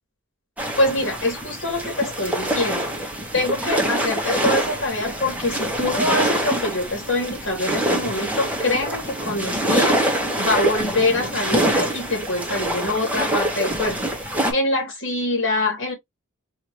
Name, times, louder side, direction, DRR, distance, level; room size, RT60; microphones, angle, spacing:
sound 1, 0.6-14.5, right 1 dB, 5° right, 1.2 m, -25 dB
voice 1, 0.8-3.0 3.3-10.0 10.4-14.0 14.5-15.9, left 2 dB, 60° left, 2.9 m, -24 dB
4.8 x 2.9 x 3.0 m
head